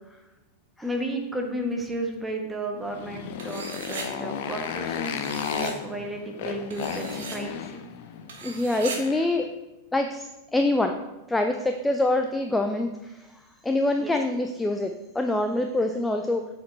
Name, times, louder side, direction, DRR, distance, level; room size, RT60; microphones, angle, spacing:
voice 1, 0.8-7.8 14.0-14.1, right 1 dB, 10° right, 1 dB, 1.3 m, -33 dB
Motorcycle, 2.8-9.4, left 7 dB, 50° left, 0.6 m, -34 dB
sound 1, 3.4-4.1 5.0-5.7 6.7-7.4 8.3-9.0, right 5 dB, 60° right, 1.2 m, -38 dB
voice 2, 8.4-9.5 9.9-11.0 11.3-16.5, left 2 dB, 10° left, 5 dB, 0.4 m, -25 dB
7.1 x 4.8 x 4.5 m, 0.99 s
figure-of-eight pair, 90°, 0 cm